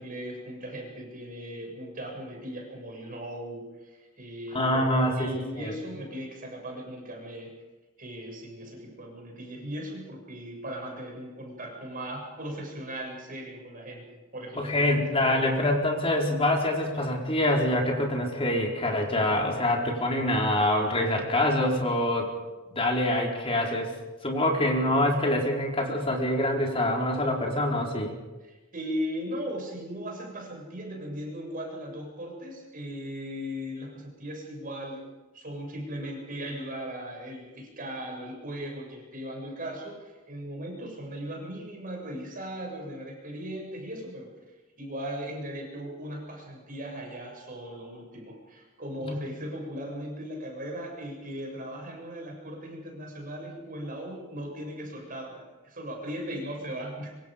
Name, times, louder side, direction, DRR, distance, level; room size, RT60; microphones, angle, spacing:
voice 1, 0.0-7.5 8.0-15.5 28.4-35.0 35.3-44.3 44.8-57.1, equal, 45° right, 1 dB, 7.1 m, -38 dB
voice 2, 4.5-5.8 14.6-22.3 22.7-23.9 24.2-28.1 49.0-49.2, left 1 dB, 30° left, -1 dB, 4.3 m, -25 dB
25.5 x 25.0 x 5.3 m, 1.2 s
head